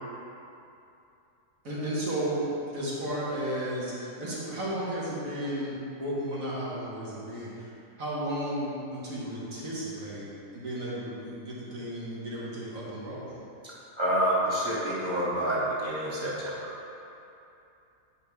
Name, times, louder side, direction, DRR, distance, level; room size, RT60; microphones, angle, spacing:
voice 1, 1.6-7.7 8.0-10.3 10.5-13.4, right 1 dB, 80° right, -8 dB, 2.1 m, -33 dB
voice 2, 14.0-16.6, right 1 dB, 20° right, -8 dB, 1.7 m, -28 dB
9.0 x 5.0 x 3.5 m, 2.7 s
omnidirectional pair, 1.4 m